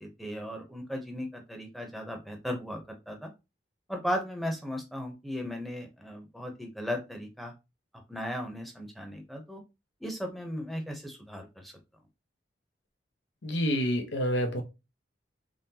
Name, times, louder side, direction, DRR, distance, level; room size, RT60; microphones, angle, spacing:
voice 1, 0.0-3.3 3.9-7.5 8.1-9.6 10.0-11.7, equal, ahead, 0.8 m, -36 dB
voice 2, 13.4-14.6, equal, 90° left, 0.9 m, -28 dB
3.8 x 3.2 x 2.8 m
head